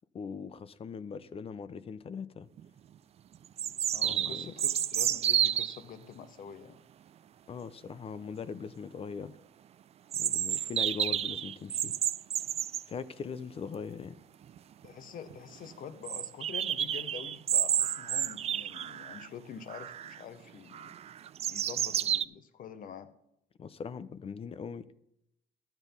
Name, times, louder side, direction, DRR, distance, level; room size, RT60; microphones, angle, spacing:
voice 1, 0.1-2.5 4.0-4.5 7.5-9.4 10.1-11.9 12.9-14.2 23.6-24.9, left 6 dB, 35° left, 15 dB, 0.6 m, -40 dB
sound 1, 2.6-2.7 3.6-5.8 10.1-12.9 14.5-14.6 14.8-14.9 15.3-15.4 16.1-19.3 19.7-20.2 20.7-22.2, right 10 dB, 40° right, 0.3 m, -30 dB
voice 2, 3.9-6.8 14.8-20.9 21.5-23.1, left 8 dB, 55° left, 11 dB, 1.0 m, -46 dB
12.5 x 8.2 x 5.4 m, 0.79 s
cardioid pair, 110°, 17 cm